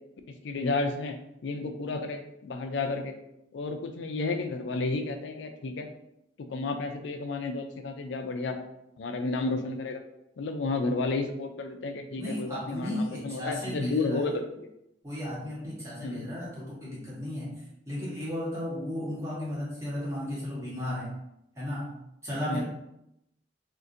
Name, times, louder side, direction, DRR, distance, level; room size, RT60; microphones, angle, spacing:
voice 1, 0.4-1.1 1.4-3.1 3.5-5.9 6.4-8.6 9.0-10.0 10.4-14.6 16.0-16.3 22.5-22.6, left 3 dB, 80° left, 6 dB, 0.4 m, -31 dB
voice 2, 12.2-14.3 15.0-21.1 21.5-21.9 22.2-22.6, left 1 dB, 15° right, -7 dB, 1.2 m, -34 dB
3.7 x 2.5 x 2.6 m, 0.82 s
head